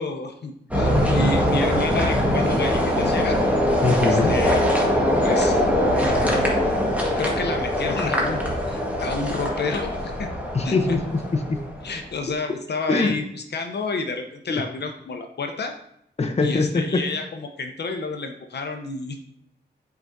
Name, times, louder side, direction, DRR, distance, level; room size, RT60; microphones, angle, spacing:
voice 1, 0.0-3.4 4.0-4.7 5.2-5.6 5.9-6.5 7.2-8.4 8.6-10.3 10.6-10.8 11.8-15.7 16.4-19.2, left 3 dB, 65° left, 4 dB, 0.8 m, -30 dB
sound 1, 0.7-11.9, equal, 10° right, 1.6 m, -22 dB
voice 2, 3.8-4.3 10.5-11.6 12.9-13.1 16.2-17.0, left 3 dB, 35° left, 5 dB, 0.9 m, -22 dB
8.0 x 4.8 x 2.7 m, 0.75 s
cardioid pair, 80°, 19 cm